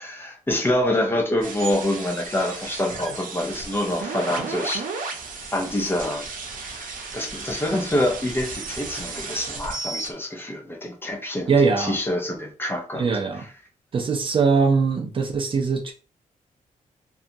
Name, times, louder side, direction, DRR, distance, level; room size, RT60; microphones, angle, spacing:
voice 1, 0.0-4.8 5.5-6.3 6.5-13.1 13.3-13.5, left 1 dB, 15° left, 0.5 m, -26 dB
sound 1, 1.4-10.1, right 4 dB, 90° right, 0.6 m, -34 dB
voice 2, 11.5-12.0 13.0-13.4 13.9-15.9, right 5 dB, 40° right, 0.4 m, -21 dB
2.8 x 2.2 x 2.5 m
wide cardioid pair, 175°, 14 cm